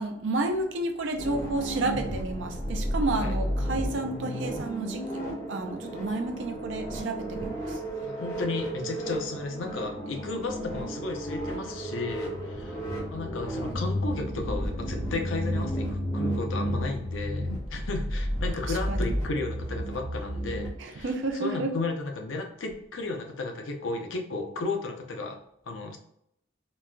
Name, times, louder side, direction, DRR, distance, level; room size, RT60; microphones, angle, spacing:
voice 1, 0.0-7.8 12.9-13.0 18.6-19.1 20.8-21.7, right 2 dB, 70° right, 5 dB, 0.5 m, -31 dB
sound 1, 1.2-20.7, equal, 20° left, 1.3 m, -32 dB
voice 2, 8.0-12.8 13.1-21.1 21.4-25.4 25.7-26.0, left 3 dB, 80° left, 3 dB, 0.6 m, -34 dB
4.0 x 2.4 x 2.2 m, 0.74 s
head